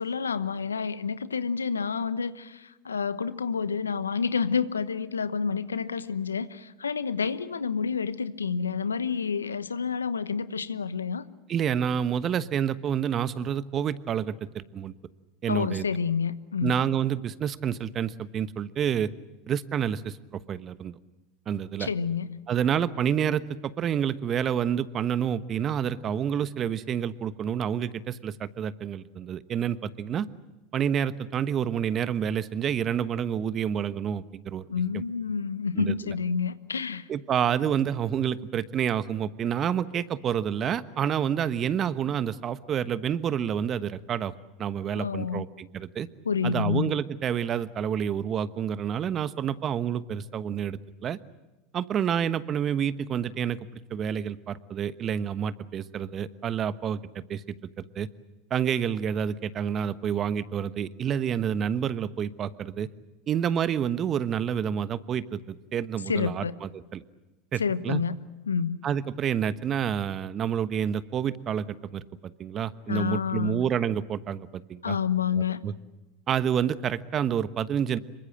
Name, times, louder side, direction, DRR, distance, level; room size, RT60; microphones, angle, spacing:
voice 1, 0.0-11.2 15.5-16.8 21.8-22.4 34.7-37.1 44.9-45.4 46.2-47.0 66.1-66.5 67.6-68.1 68.5-68.8 72.9-73.6 74.8-75.6, left 6 dB, 90° left, 15 dB, 1.0 m, -29 dB
voice 2, 11.5-14.9 15.4-15.9 16.6-19.1 19.5-21.0 21.5-21.9 22.5-30.3 30.7-34.7 34.9-35.0 35.7-36.1 37.1-44.3 44.6-46.1 46.4-51.2 51.7-53.6 53.9-57.4 57.8-58.1 58.5-62.9 63.3-67.0 67.5-68.0 68.8-72.0 72.4-75.0 75.3-75.7 76.3-78.0, right 8 dB, 35° right, 15 dB, 1.1 m, -28 dB
26.0 x 23.5 x 7.7 m, 1.1 s
hypercardioid pair, 85°, 0 cm